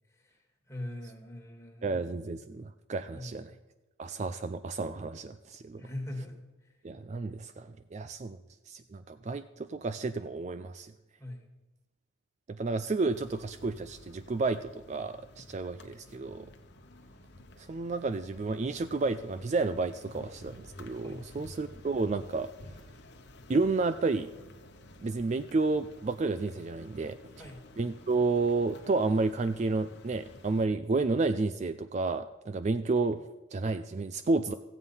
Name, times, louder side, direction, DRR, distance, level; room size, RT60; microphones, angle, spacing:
voice 1, 0.1-2.1 3.1-3.5 5.8-6.7 11.2-11.5 21.0-21.2 27.4-27.6, left 1 dB, 15° left, 2 dB, 1.7 m, -42 dB
voice 2, 1.8-3.5 4.0-5.8 6.8-8.4 8.7-10.9 12.5-16.5 17.7-22.5 23.5-24.3 25.0-27.2 27.8-34.5, right 3 dB, 35° right, 11 dB, 0.3 m, -31 dB
sound 1, 13.1-30.7, left 1 dB, 55° left, 1.0 m, -52 dB
14.5 x 8.2 x 5.5 m, 1.1 s
head